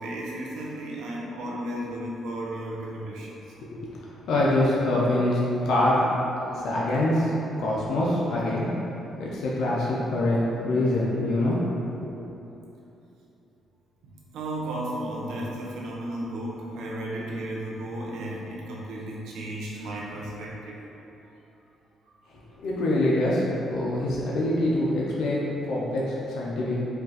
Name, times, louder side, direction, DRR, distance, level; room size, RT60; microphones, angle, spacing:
voice 1, 0.0-3.4 14.0-20.8, right 1 dB, 85° right, -4 dB, 0.8 m, -34 dB
voice 2, 4.3-6.0 6.5-8.7 9.2-11.6 12.0-12.1 22.6-26.8, left 1 dB, 75° left, -5 dB, 0.6 m, -25 dB
4.5 x 2.5 x 4.0 m, 3.0 s
cardioid pair, 90°, 0 cm